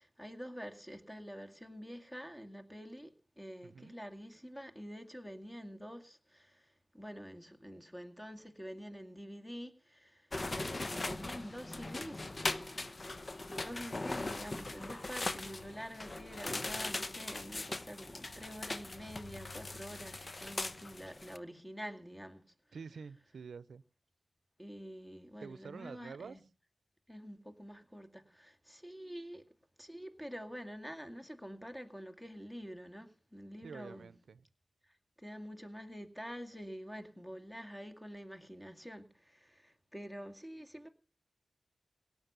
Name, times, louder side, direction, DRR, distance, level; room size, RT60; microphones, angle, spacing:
voice 1, 0.0-12.3 12.6-13.2 13.5-22.5 24.6-26.4 27.1-29.5 29.8-34.1 34.8-40.9, equal, 10° left, 2.1 m, -47 dB
voice 2, 3.6-3.9 22.7-23.8 25.4-26.4 33.6-34.4, right 5 dB, 90° right, 0.6 m, -48 dB
sound 1, 10.3-21.4, left 2 dB, 40° left, 0.9 m, -40 dB
17.5 x 8.5 x 6.8 m
cardioid pair, 65°, 0 cm